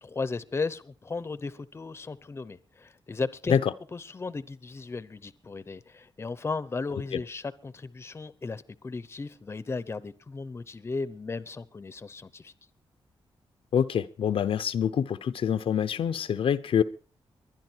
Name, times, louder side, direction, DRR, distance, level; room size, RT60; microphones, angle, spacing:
voice 1, 0.0-3.6 3.9-12.5, left 4 dB, 25° left, 0.8 m, -35 dB
voice 2, 13.7-16.8, left 8 dB, 75° left, 0.8 m, -26 dB
22.5 x 10.5 x 4.6 m
wide cardioid pair, 140°, 9 cm